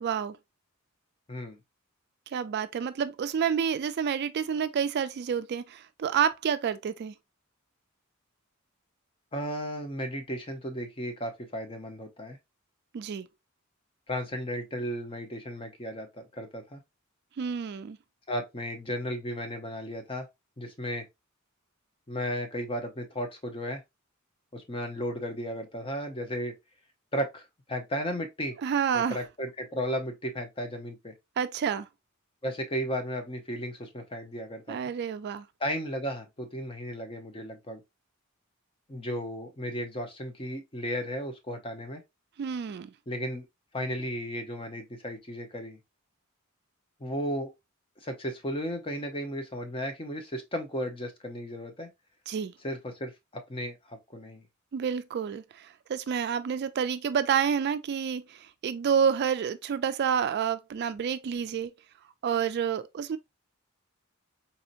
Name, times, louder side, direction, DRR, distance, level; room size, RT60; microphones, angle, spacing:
voice 1, 0.0-0.4 2.3-7.1 12.9-13.3 17.4-18.0 28.6-29.2 31.4-31.9 34.7-35.4 42.4-42.9 52.3-52.5 54.7-61.7 62.2-63.2, right 7 dB, 50° right, 0.3 m, -29 dB
voice 2, 9.3-12.4 14.1-16.8 18.3-20.3 20.6-21.1 22.1-23.8 24.5-26.5 27.1-28.6 28.9-31.1 32.4-34.8 35.6-37.8 38.9-42.0 43.1-43.5 43.7-45.8 47.0-47.5 48.0-51.9 52.6-54.4, equal, 25° left, 0.8 m, -34 dB
4.1 x 2.8 x 2.5 m
head